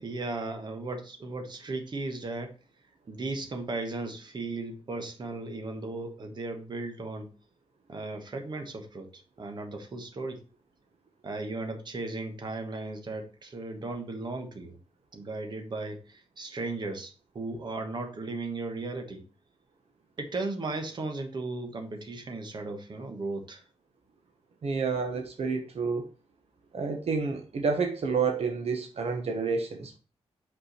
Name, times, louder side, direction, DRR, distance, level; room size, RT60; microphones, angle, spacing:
voice 1, 0.0-2.5 3.1-7.3 7.9-10.4 11.2-14.8 15.1-19.2 20.2-23.6, right 3 dB, 40° right, 4 dB, 1.3 m, -36 dB
voice 2, 24.6-26.1 26.7-30.0, right 5 dB, 65° right, 4 dB, 1.1 m, -29 dB
6.1 x 5.5 x 4.3 m, 0.35 s
wide cardioid pair, 155°, 11 cm